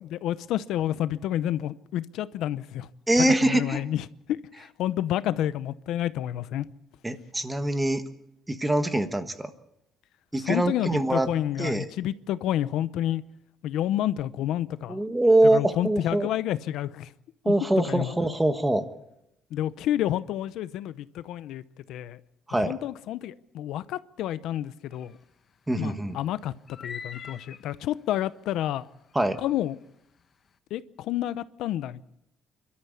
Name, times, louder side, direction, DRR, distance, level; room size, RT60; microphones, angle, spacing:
voice 1, 0.0-2.9 3.2-6.7 10.5-13.2 13.6-15.0 15.4-17.1 17.4-17.5 17.9-18.1 19.5-22.2 22.6-25.2 25.8-26.5 26.8-28.9 29.4-29.8 30.7-32.0, left 12 dB, 80° left, 0.7 m, -29 dB
voice 2, 3.1-3.8 7.0-8.0 8.5-9.5 10.3-11.3 11.6-11.9 14.9-16.3 17.4-18.9 22.5-22.7 25.7-26.2 29.1-29.4, right 1 dB, 10° right, 1.3 m, -23 dB
sound 1, 24.9-25.2 26.7-27.8 29.2-29.5, left 6 dB, 35° left, 1.2 m, -42 dB
29.0 x 13.0 x 8.4 m
cardioid pair, 170°, 0 cm